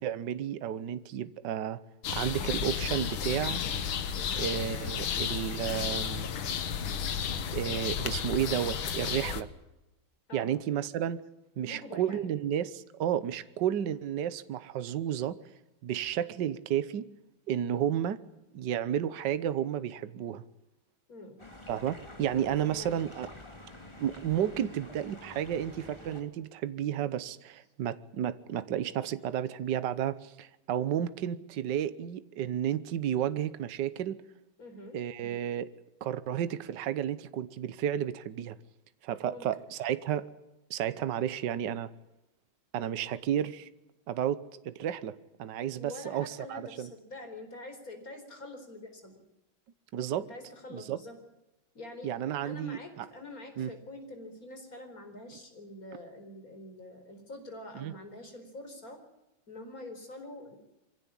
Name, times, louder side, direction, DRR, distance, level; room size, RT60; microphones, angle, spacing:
voice 1, 0.0-1.8 2.1-3.6 4.4-6.3 7.5-9.5 10.3-11.2 11.6-15.4 15.8-17.1 17.5-18.2 18.5-20.4 21.7-23.3 24.0-34.2 34.9-35.7 36.0-38.6 39.0-40.3 40.7-41.9 42.7-43.7 44.1-46.9 49.9-50.3 50.7-51.0 52.0-53.1 53.6-53.7 57.7-57.9, right 10 dB, 65° right, 1.5 m, -32 dB
sound 1, 2.0-9.4, left 7 dB, 80° left, 2.1 m, -33 dB
voice 2, 4.2-4.5 10.3-10.5 11.6-12.4 21.1-21.4 22.6-23.2 27.6-27.7 34.6-35.0 39.3-39.5 45.8-49.2 50.2-51.2 51.7-59.0 59.5-60.6, left 2 dB, 45° left, 4.8 m, -46 dB
sound 2, 21.4-26.2, left 1 dB, 15° left, 3.1 m, -48 dB
24.0 x 16.5 x 9.8 m
omnidirectional pair, 2.2 m